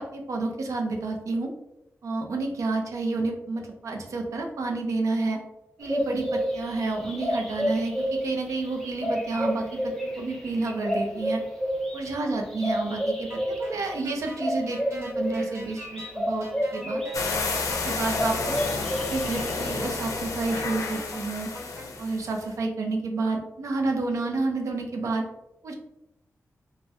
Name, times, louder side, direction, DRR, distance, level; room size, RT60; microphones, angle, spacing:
voice 1, 0.0-1.5 2.0-5.4 5.8-11.4 11.9-16.5 16.7-17.0 17.7-18.6 18.9-21.5 22.0-25.2 25.6-25.7, right 3 dB, 75° right, 2 dB, 0.5 m, -30 dB
sound 1, 5.8-17.3 17.6-19.7, equal, 5° left, 0.5 m, -30 dB
sound 2, 13.3-21.9, equal, 60° right, 1.1 m, -44 dB
sound 3, 17.1-22.4, left 3 dB, 85° left, 0.4 m, -31 dB
3.3 x 2.1 x 2.6 m, 0.89 s
wide cardioid pair, 155°, 5 cm